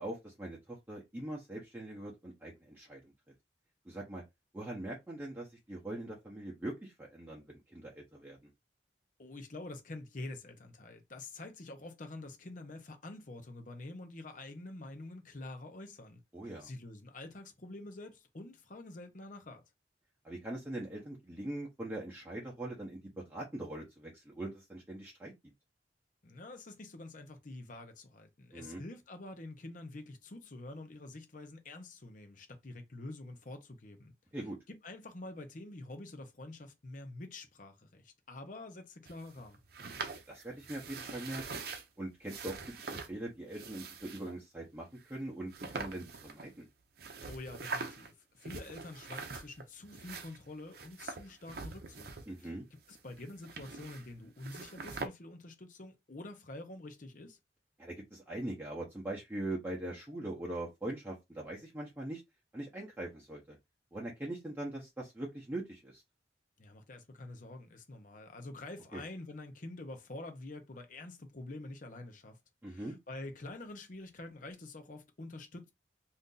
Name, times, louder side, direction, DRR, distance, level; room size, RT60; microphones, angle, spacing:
voice 1, 0.0-3.1 3.8-4.2 4.5-8.5 16.3-16.7 20.2-25.3 28.5-28.8 34.3-34.6 40.3-41.6 42.0-46.7 52.3-52.6 57.8-62.2 62.5-63.6 63.9-66.0 68.9-69.0 72.6-72.9, right 1 dB, 10° right, 0.7 m, -42 dB
voice 2, 9.2-19.6 26.2-34.1 34.7-39.6 47.2-52.1 52.4-52.5 52.9-57.4 66.6-72.4 72.7-75.7, left 2 dB, 45° left, 0.8 m, -47 dB
sound 1, 39.1-41.8 42.3-43.1 43.5-44.3 45.0-45.1 45.5-46.6 47.0-48.1 48.4-49.6 49.9-52.5 52.8-54.1 54.4-55.1, right 4 dB, 60° right, 0.6 m, -44 dB
2.7 x 2.5 x 3.7 m
head